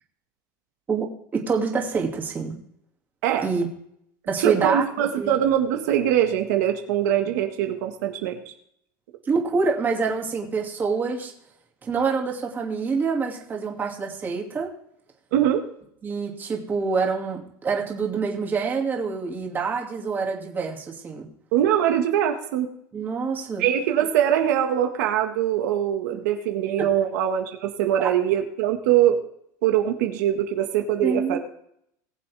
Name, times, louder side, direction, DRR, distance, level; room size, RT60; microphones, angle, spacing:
voice 1, 1.3-2.6 3.4-3.7 4.3-4.8 5.2-5.3 9.3-11.3 11.8-14.7 16.0-21.3 22.9-23.6 26.8-26.9 28.0-28.1 31.0-31.4, right 5 dB, 20° right, 0 dB, 2.4 m, -26 dB
voice 2, 4.4-8.4 15.3-15.6 21.5-22.7 23.6-29.2 29.6-31.4, right 10 dB, 85° right, 4 dB, 1.8 m, -22 dB
20.0 x 7.5 x 3.5 m, 0.72 s
supercardioid pair, 150°, 9 cm